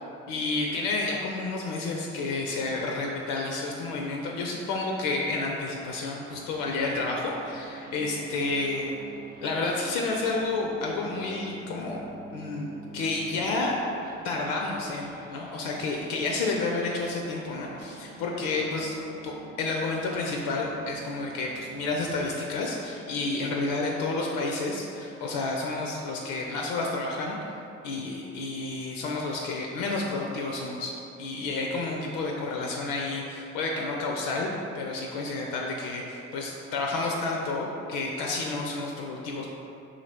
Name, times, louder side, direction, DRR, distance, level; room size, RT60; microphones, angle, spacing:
voice 1, 0.3-9.0 9.4-12.1 12.3-13.8 14.2-19.0 19.2-27.4 27.8-34.5 34.7-39.5, left 3 dB, 65° left, -1 dB, 0.5 m, -30 dB
sound 1, 6.3-22.3, right 3 dB, 25° right, 0.3 m, -46 dB
2.8 x 2.6 x 4.2 m, 2.7 s
figure-of-eight pair, 45°, 38 cm